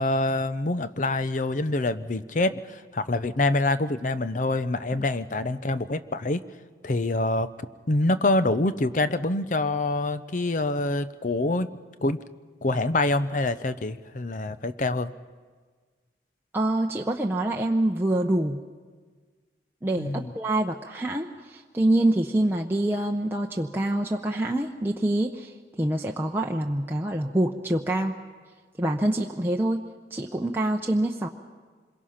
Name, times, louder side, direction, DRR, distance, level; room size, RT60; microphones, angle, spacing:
voice 1, 0.0-6.4 6.8-7.5 7.9-11.7 12.0-12.2 12.6-15.1 20.0-20.3, left 2 dB, 45° left, 12 dB, 0.7 m, -26 dB
voice 2, 16.5-18.6 19.8-25.5 25.8-28.2 28.8-29.8 30.1-31.3, right 1 dB, 15° right, 0 dB, 0.7 m, -25 dB
26.0 x 22.5 x 5.8 m, 1.5 s
head